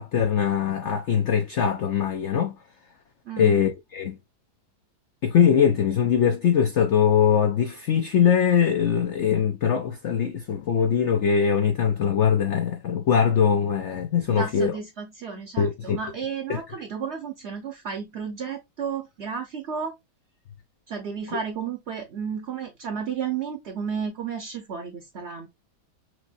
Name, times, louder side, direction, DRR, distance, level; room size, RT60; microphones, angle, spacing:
voice 1, 0.0-2.5 3.4-4.2 5.2-14.7 15.6-16.0 16.5-16.6 21.3-21.4, left 7 dB, 60° left, 0.8 m, -22 dB
voice 2, 3.2-3.6 14.3-19.9 20.9-25.5, right 6 dB, 50° right, 1.0 m, -32 dB
6.0 x 2.6 x 2.6 m
omnidirectional pair, 1.8 m